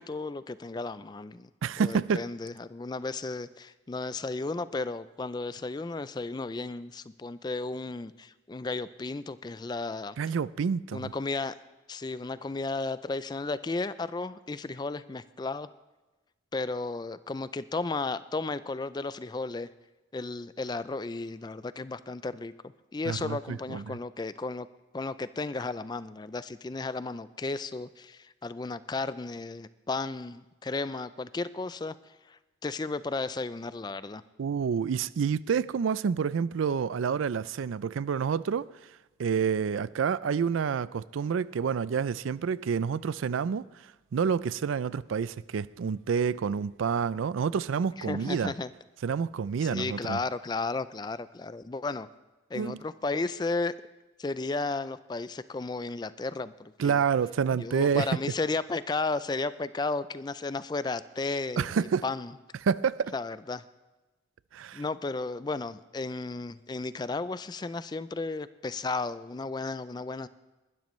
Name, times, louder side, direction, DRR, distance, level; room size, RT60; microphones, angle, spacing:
voice 1, 0.0-1.5 1.8-10.2 10.9-11.5 11.9-15.7 16.5-19.7 20.1-22.5 22.9-24.7 24.9-31.9 32.3-34.2 48.0-48.7 49.6-52.1 52.5-53.7 54.2-57.0 57.6-61.7 62.0-62.3 63.1-63.6 64.7-70.3, left 3 dB, 20° left, 0.3 m, -34 dB
voice 2, 1.6-2.3 10.2-11.1 23.0-24.0 34.4-38.7 39.2-43.6 44.1-48.5 49.0-50.2 52.5-52.8 56.8-58.1 61.6-62.0 62.6-63.1 64.5-64.8, right 6 dB, 90° right, 0.4 m, -28 dB
20.5 x 12.5 x 3.1 m
head